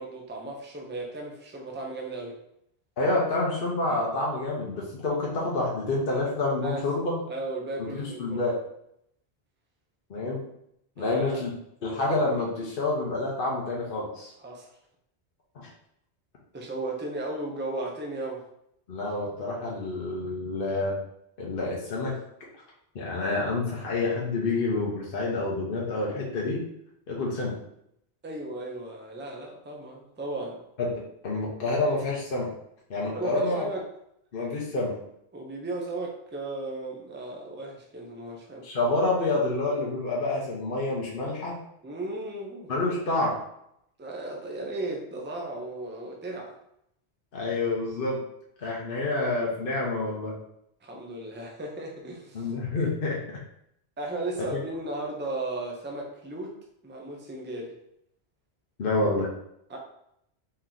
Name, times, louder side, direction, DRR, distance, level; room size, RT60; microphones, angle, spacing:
voice 1, 0.0-2.4 6.6-6.8 7.3-8.4 11.0-11.4 14.4-14.8 16.5-18.4 28.2-30.6 33.1-33.8 35.3-38.7 41.8-42.7 44.0-46.5 50.8-52.5 54.0-56.6 56.8-57.8 59.7-59.8, right 2 dB, 10° right, 0 dB, 0.6 m, -35 dB
voice 2, 3.0-7.2 7.8-8.5 10.1-10.4 11.0-11.5 11.8-14.3 15.5-15.7 18.9-21.0 21.4-22.1 22.9-26.6 27.1-27.5 30.8-32.5 32.9-33.6 34.3-34.9 38.6-41.6 42.7-43.4 47.3-48.2 48.6-50.3 52.3-53.2 58.8-59.3, left 2 dB, 55° left, -4 dB, 1.1 m, -28 dB
4.4 x 3.0 x 3.8 m, 0.76 s
omnidirectional pair, 1.1 m